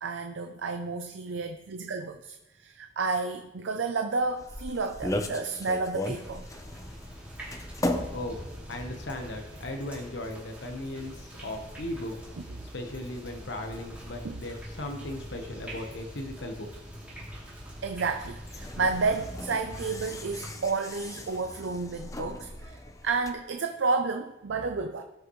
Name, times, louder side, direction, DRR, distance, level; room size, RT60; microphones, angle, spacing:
voice 1, 0.0-6.5 14.2-14.4 17.8-25.0, right 4 dB, 85° right, 6 dB, 0.6 m, -31 dB
sound 1, 4.2-23.3, left 1 dB, 15° left, 0.7 m, -39 dB
sound 2, 6.0-20.5, equal, 10° right, 2.9 m, -44 dB
voice 2, 8.7-12.2 12.7-16.7, left 1 dB, 70° left, 3 dB, 1.1 m, -37 dB
17.5 x 6.6 x 3.1 m, 1.0 s
head